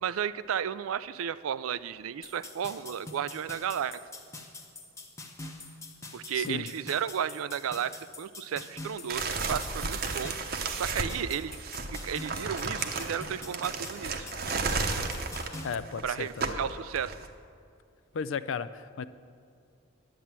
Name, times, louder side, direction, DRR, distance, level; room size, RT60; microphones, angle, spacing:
voice 1, 0.0-4.0 6.1-11.6 12.0-14.3 16.0-17.1, right 8 dB, 80° right, 16 dB, 0.4 m, -33 dB
sound 1, 2.2-15.7, left 2 dB, 15° left, 0.8 m, -45 dB
voice 2, 6.3-6.7 15.6-16.6 18.1-19.1, left 6 dB, 65° left, 15 dB, 0.4 m, -35 dB
sound 2, 9.1-17.3, right 4 dB, 45° right, 0.8 m, -33 dB
10.5 x 8.2 x 7.3 m, 2.4 s
head